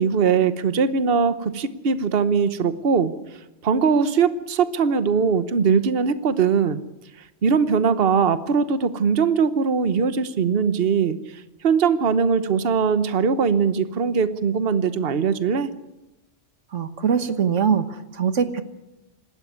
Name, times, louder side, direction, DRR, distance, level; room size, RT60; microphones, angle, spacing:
voice 1, 0.0-3.1 3.6-6.8 7.4-15.7, right 6 dB, 55° right, 12 dB, 1.2 m, -21 dB
voice 2, 16.7-18.6, right 7 dB, 90° right, 10 dB, 1.6 m, -22 dB
27.0 x 13.0 x 9.6 m, 0.97 s
omnidirectional pair, 1.2 m